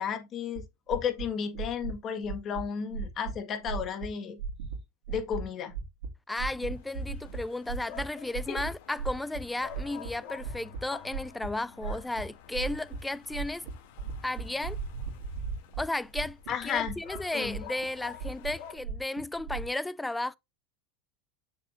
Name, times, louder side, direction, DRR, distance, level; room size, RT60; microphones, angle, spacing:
voice 1, 0.0-4.4 5.1-5.7 8.2-8.6 16.5-17.0 17.3-17.7, left 7 dB, 40° left, 1.7 m, -33 dB
sound 1, 0.6-0.7 0.9-1.2 1.5-1.9 2.2-2.6 2.9-3.3 3.7-4.1 4.4-4.8 5.1-5.4 5.7-6.1 6.4-7.4 7.7-8.0 8.3-8.7 9.0-9.4 9.7-10.8 11.1-11.5 11.8-12.2 12.5-13.0 13.3-13.7 14.0-15.8 16.1-16.5 16.8-17.9 18.2-19.7, right 5 dB, 85° right, 2.4 m, -36 dB
voice 2, 6.3-13.7 14.2-14.8 15.8-20.4, left 2 dB, 5° left, 0.4 m, -34 dB
sound 2, 6.7-18.7, left 8 dB, 70° left, 2.6 m, -49 dB
7.1 x 6.6 x 2.6 m
supercardioid pair, 110°, 0 cm